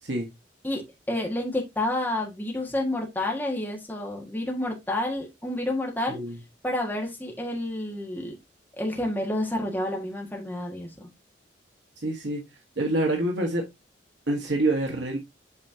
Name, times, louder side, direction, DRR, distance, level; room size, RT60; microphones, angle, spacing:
voice 1, 1.1-6.2 6.6-8.3 8.8-11.1, left 1 dB, 10° left, -1 dB, 1.6 m, -29 dB
voice 2, 6.1-6.4 12.0-12.4 12.8-13.6 14.3-15.2, right 2 dB, 75° right, 1 dB, 1.5 m, -26 dB
8.4 x 4.5 x 2.8 m, 0.20 s
head